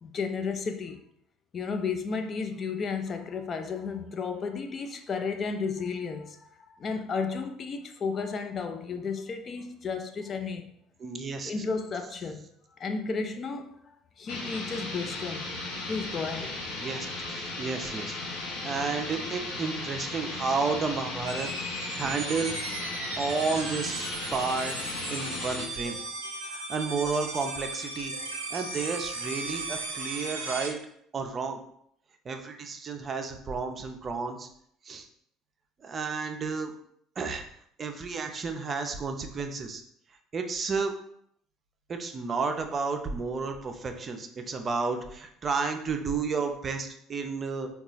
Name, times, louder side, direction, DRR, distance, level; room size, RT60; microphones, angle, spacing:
voice 1, 0.0-1.0 1.5-10.8 11.4-12.5 12.8-15.6 15.9-16.6, left 5 dB, 35° left, 0.4 m, -33 dB
voice 2, 11.0-11.5 16.8-18.2 18.6-21.7 22.0-22.6 23.2-24.8 25.1-26.0 26.5-28.1 28.5-30.8 31.1-31.6 32.3-34.5 34.8-35.1 35.8-36.7 37.2-37.4 37.8-39.8 40.3-40.9 41.9-47.7, right 4 dB, 35° right, 0.5 m, -32 dB
sound 1, 14.3-25.7, left 2 dB, 65° left, 0.8 m, -36 dB
sound 2, 21.3-30.7, right 2 dB, 80° right, 0.5 m, -36 dB
3.8 x 2.3 x 3.8 m
figure-of-eight pair, 60°, 0 cm